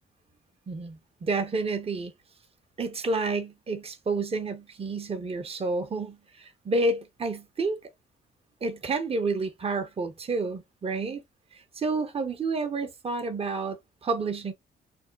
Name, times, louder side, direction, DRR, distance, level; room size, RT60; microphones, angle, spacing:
voice 1, 0.7-2.1 2.8-7.8 8.6-11.2 11.5-14.5, right 3 dB, 30° right, 0.8 m, -30 dB
3.4 x 2.1 x 3.8 m
cardioid pair, 90°, 20 cm